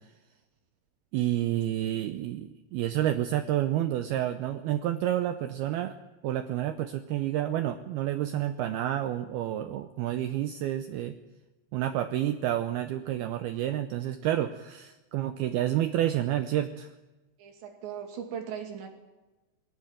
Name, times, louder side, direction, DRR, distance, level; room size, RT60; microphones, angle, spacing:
voice 1, 1.1-5.9 6.2-11.2 11.7-16.9, right 12 dB, 90° right, 9 dB, 2.2 m, -29 dB
voice 2, 17.4-18.9, right 8 dB, 65° right, 4 dB, 4.7 m, -39 dB
21.0 x 17.0 x 9.2 m, 1.1 s
omnidirectional pair, 5.6 m